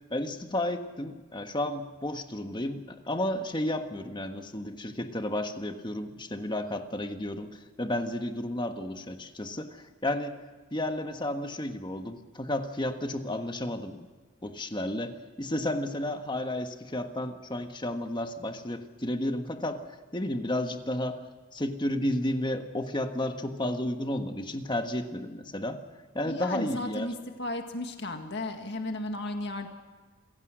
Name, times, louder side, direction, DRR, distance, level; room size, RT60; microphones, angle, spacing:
voice 1, 0.1-10.4 10.7-14.1 14.4-19.8 20.1-21.2 21.5-25.8 26.1-27.1, left 1 dB, 25° left, 6 dB, 1.5 m, -32 dB
voice 2, 26.3-29.7, left 1 dB, 60° left, 5 dB, 1.9 m, -34 dB
27.5 x 16.5 x 6.3 m, 1.4 s
head